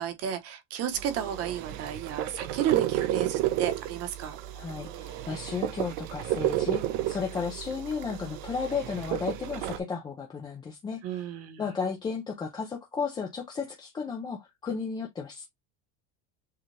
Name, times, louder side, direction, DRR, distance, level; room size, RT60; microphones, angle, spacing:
voice 1, 0.0-4.4 11.0-11.6, right 9 dB, 40° right, 0.9 m, -32 dB
sound 1, 0.9-9.8, right 13 dB, 60° right, 0.7 m, -32 dB
voice 2, 4.5-11.3 11.6-15.5, left 5 dB, 10° left, 0.4 m, -34 dB
6.6 x 2.3 x 3.1 m
cardioid pair, 150°, 37 cm